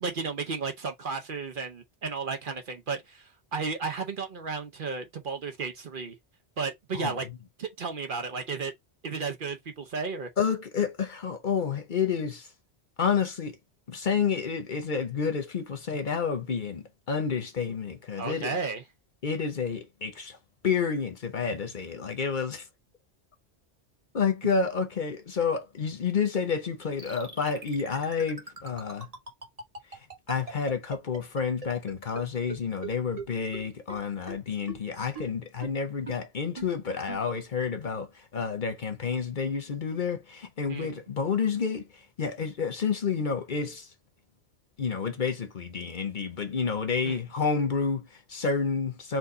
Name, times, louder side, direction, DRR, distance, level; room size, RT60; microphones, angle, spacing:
voice 1, 0.0-6.1 6.6-7.3 7.6-8.7 9.0-10.3 18.2-18.8 40.7-41.0 47.1-47.2, right 4 dB, 55° right, 0.8 m, -33 dB
voice 2, 10.4-12.5 13.0-13.6 13.9-18.6 19.2-20.4 20.6-22.7 24.1-29.1 30.3-43.9 44.8-49.2, left 6 dB, 50° left, 0.9 m, -29 dB
sound 1, 27.0-32.2 32.5-32.6 32.8-32.9 33.2-33.3 33.5-33.6 33.9-34.0 34.3-34.4 34.7-34.8 35.2-35.3 35.6-35.7 36.1-36.2 36.6-36.7 37.1-37.2, right 4 dB, 35° right, 1.3 m, -39 dB
4.5 x 2.6 x 3.8 m
omnidirectional pair, 1.2 m